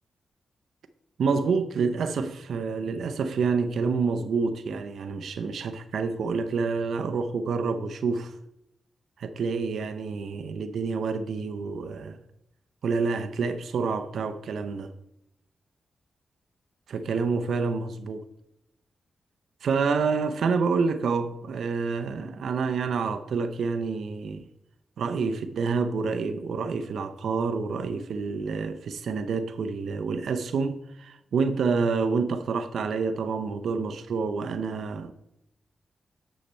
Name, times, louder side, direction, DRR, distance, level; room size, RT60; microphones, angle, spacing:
voice 1, 1.2-8.3 9.2-12.2 12.8-14.9 16.9-18.2 19.6-24.5 25.0-35.1, right 5 dB, 80° right, 0.6 m, -28 dB
10.0 x 6.5 x 4.3 m
cardioid pair, 55°, 0 cm